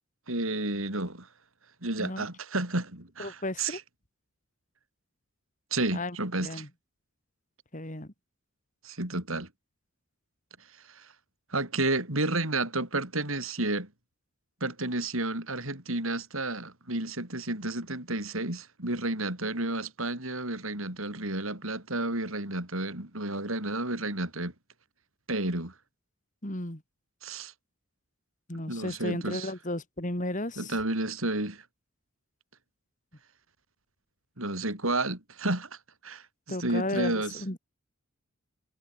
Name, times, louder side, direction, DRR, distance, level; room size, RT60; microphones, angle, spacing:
voice 1, 0.3-1.3 1.8-3.8 5.7-6.7 8.8-9.5 10.9-11.1 11.5-13.9 14.6-24.5 25.3-25.7 27.2-27.5 28.7-29.5 30.6-31.6 34.4-35.8 36.0-37.4, right 2 dB, 70° right, 5.7 m, -31 dB
voice 2, 3.2-3.8 5.9-6.7 7.7-8.1 26.4-26.8 28.5-30.7 36.5-37.6, left 1 dB, 35° left, 3.2 m, -34 dB
head